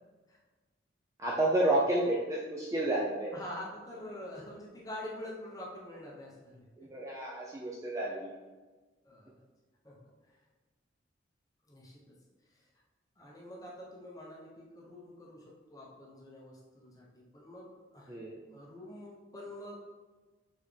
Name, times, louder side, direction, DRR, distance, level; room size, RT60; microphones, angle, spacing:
voice 1, 1.2-3.3 6.8-8.4 18.1-18.4, right 1 dB, 15° right, -4 dB, 0.4 m, -30 dB
voice 2, 3.3-6.9 9.0-9.3 9.8-10.3 11.7-12.0 12.5-12.6 13.2-18.2 18.5-19.7, left 1 dB, 20° left, -4 dB, 0.8 m, -46 dB
4.3 x 3.5 x 3.2 m, 1.3 s
head